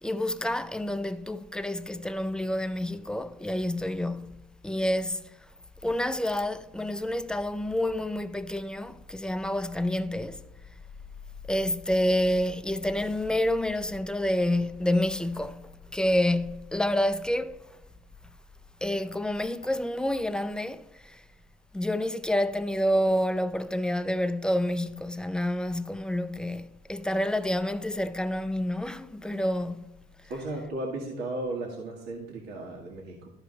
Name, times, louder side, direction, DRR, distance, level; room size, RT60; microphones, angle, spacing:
voice 1, 0.0-5.3 5.8-10.4 11.5-17.6 18.8-21.2 21.7-30.0, left 1 dB, 5° left, 0.5 m, -28 dB
voice 2, 30.3-33.3, right 2 dB, 80° right, 1.7 m, -35 dB
13.0 x 5.0 x 3.9 m
cardioid pair, 110°, 17 cm